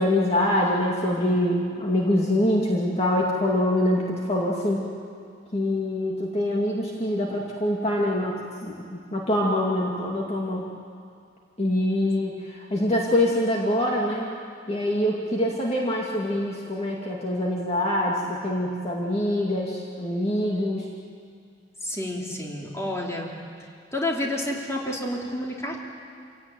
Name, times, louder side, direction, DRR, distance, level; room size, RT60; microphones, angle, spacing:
voice 1, 0.0-4.9 5.5-10.7 11.6-14.3 14.7-20.9, left 1 dB, 35° left, -2 dB, 2.4 m, -25 dB
voice 2, 21.8-23.3 23.9-25.8, left 1 dB, 15° left, -2 dB, 3.5 m, -29 dB
27.0 x 17.5 x 9.2 m, 2.3 s
head